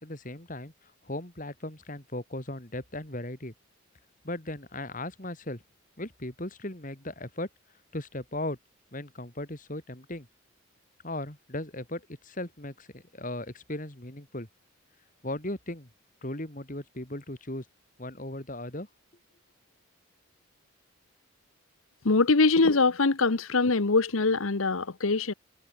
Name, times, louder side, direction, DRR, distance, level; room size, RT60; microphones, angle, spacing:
voice 1, 0.0-3.5 4.2-5.6 6.0-7.5 7.9-8.6 8.9-10.3 11.0-14.5 15.2-15.9 16.2-17.6 18.0-18.9, left 1 dB, 40° left, 3.0 m, -37 dB
voice 2, 22.0-25.3, left 3 dB, 75° left, 1.1 m, -23 dB
head